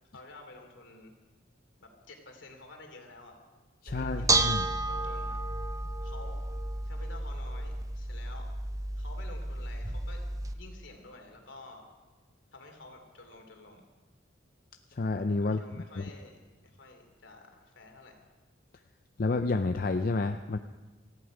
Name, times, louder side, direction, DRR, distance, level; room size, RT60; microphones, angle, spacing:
voice 1, 0.1-1.2 1.8-3.4 3.9-5.4 6.0-6.4 6.8-8.5 9.0-10.2 10.5-11.9 12.5-13.9 15.4-18.2, left 2 dB, 75° left, 4 dB, 2.8 m, -50 dB
voice 2, 3.8-4.7 14.9-15.6 16.0-16.1 19.2-20.6, left 3 dB, 50° left, 7 dB, 0.5 m, -29 dB
Bell / Dishes pots and pans, 3.9-10.5, right 2 dB, 20° right, 0.7 m, -32 dB
19.0 x 14.5 x 5.0 m, 1.2 s
head